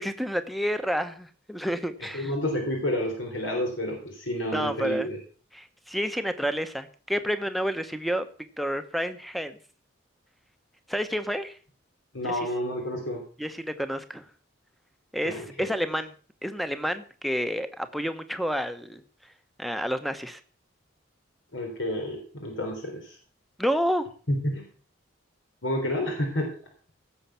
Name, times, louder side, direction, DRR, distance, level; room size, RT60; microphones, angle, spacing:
voice 1, 0.0-2.3 4.5-5.1 5.5-8.2 8.6-9.6 10.9-11.6 12.2-12.4 13.4-14.3 15.1-16.1 16.4-19.0 19.6-20.4 23.6-24.1, equal, ahead, 10 dB, 1.0 m, -29 dB
voice 2, 2.1-5.2 12.1-13.2 15.3-15.7 21.5-23.2 24.3-24.7 25.6-26.5, left 1 dB, 75° left, 2 dB, 3.5 m, -30 dB
17.0 x 7.2 x 5.8 m, 0.41 s
head